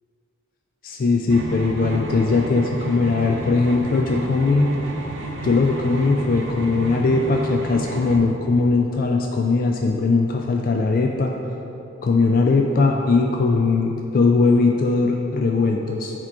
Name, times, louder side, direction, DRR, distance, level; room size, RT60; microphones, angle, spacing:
voice 1, 0.8-4.7 5.4-11.3 12.0-16.1, left 3 dB, 45° left, 2 dB, 0.3 m, -20 dB
sound 1, 1.3-8.2, right 1 dB, 65° right, 0.7 m, -31 dB
7.3 x 3.7 x 4.6 m, 2.9 s
head